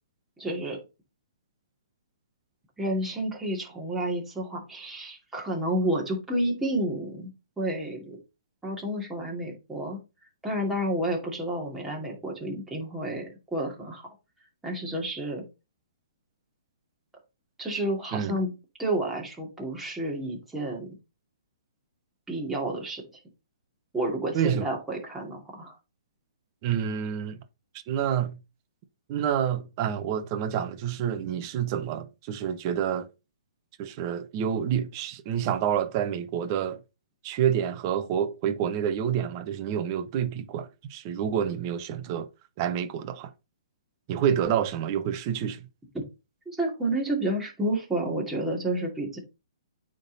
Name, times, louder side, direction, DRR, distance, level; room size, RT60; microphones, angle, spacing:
voice 1, 0.4-0.8 2.8-7.3 7.6-8.2 8.6-10.0 10.4-14.1 14.6-15.5 17.6-18.5 18.8-20.9 22.3-23.0 23.9-25.7 46.5-49.2, right 1 dB, 5° right, 2.6 m, -30 dB
voice 2, 26.6-27.4 27.9-28.4 29.1-33.1 33.8-36.8 37.2-42.3 42.6-43.3 44.1-45.6, right 9 dB, 35° right, 1.0 m, -28 dB
9.0 x 3.8 x 4.1 m
hypercardioid pair, 140°, 3 cm